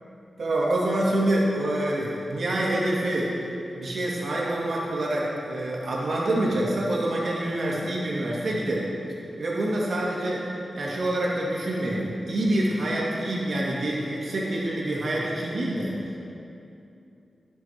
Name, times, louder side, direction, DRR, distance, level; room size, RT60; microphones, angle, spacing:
voice 1, 0.4-3.3 3.7-8.9 9.4-10.4 10.7-16.2, right 1 dB, 65° right, -5 dB, 2.1 m, -26 dB
14.0 x 7.0 x 4.6 m, 2.7 s
wide cardioid pair, 85°, 0 cm